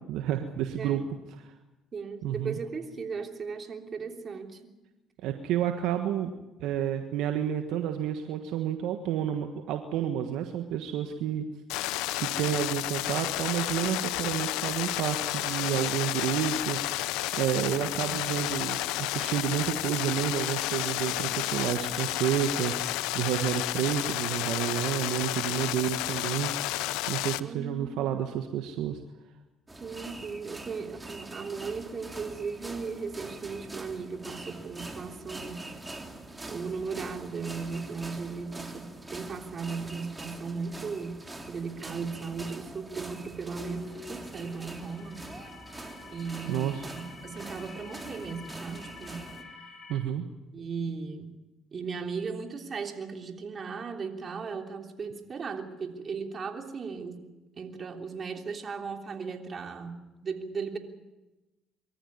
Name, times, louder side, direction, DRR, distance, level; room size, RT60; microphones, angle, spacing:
voice 1, 0.1-1.0 1.4-1.5 2.2-2.6 5.2-6.3 6.6-11.4 12.1-26.5 27.1-29.0 46.5-46.8 49.9-50.2, right 10 dB, 75° right, 6 dB, 1.4 m, -30 dB
voice 2, 0.8-1.1 1.9-4.6 17.6-18.2 27.4-28.3 29.8-35.6 36.5-41.2 41.5-45.2 46.1-49.8 50.5-51.3 51.7-57.2 57.6-59.9 60.2-60.8, right 5 dB, 45° right, 4 dB, 3.3 m, -37 dB
sound 1, 11.7-27.4, left 17 dB, 80° left, 0.7 m, -31 dB
sound 2, 29.7-49.4, right 2 dB, 15° right, 3.1 m, -44 dB
sound 3, 43.6-49.9, left 5 dB, 60° left, 6.6 m, -48 dB
24.0 x 14.0 x 9.6 m, 1.0 s
supercardioid pair, 70°, 0 cm